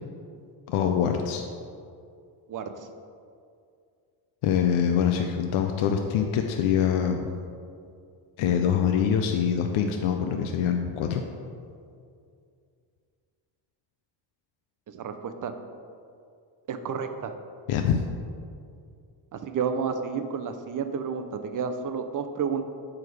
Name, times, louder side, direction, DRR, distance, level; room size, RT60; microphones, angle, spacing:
voice 1, 0.7-1.5 4.4-7.2 8.4-11.2 17.7-18.0, left 8 dB, 85° left, 4 dB, 0.6 m, -24 dB
voice 2, 2.5-2.9 14.9-15.5 16.7-17.3 19.3-22.6, right 6 dB, 40° right, 8 dB, 0.6 m, -31 dB
7.2 x 4.7 x 4.7 m, 2.4 s
cardioid pair, 90°, 49 cm